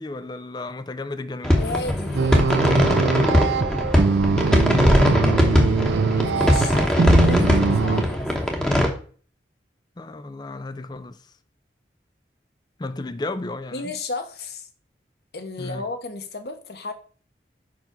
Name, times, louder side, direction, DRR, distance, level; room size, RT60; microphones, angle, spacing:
voice 1, 0.0-1.6 4.3-4.9 10.0-11.2 12.8-13.9 15.6-15.8, left 2 dB, 25° left, 0.4 m, -33 dB
sound 1, 1.4-8.9, left 1 dB, 5° left, 1.0 m, -20 dB
voice 2, 1.6-2.7 6.2-8.6 13.7-14.7 15.3-16.9, left 2 dB, 65° left, 1.1 m, -33 dB
sound 2, 2.1-8.0, right 5 dB, 85° right, 0.4 m, -22 dB
5.3 x 4.9 x 5.9 m
head